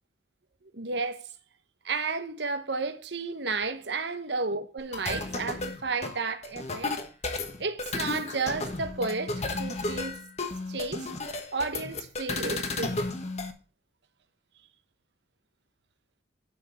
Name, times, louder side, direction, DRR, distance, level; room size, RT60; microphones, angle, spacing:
voice 1, 0.7-1.3 1.8-7.0 7.6-10.2 10.7-11.1 11.5-13.0, right 4 dB, 65° right, 1.0 m, -32 dB
sound 1, 4.8-13.5, left 2 dB, 35° left, 1.3 m, -33 dB
9.8 x 6.1 x 5.6 m
head